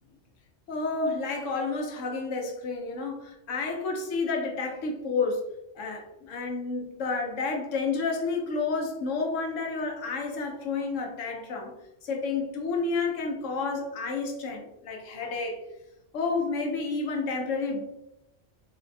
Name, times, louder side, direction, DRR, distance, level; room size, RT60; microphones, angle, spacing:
voice 1, 0.7-5.5 5.8-11.7 12.0-15.6 16.1-17.8, left 4 dB, 90° left, 1 dB, 1.0 m, -30 dB
3.9 x 2.1 x 2.6 m, 0.88 s
omnidirectional pair, 1.3 m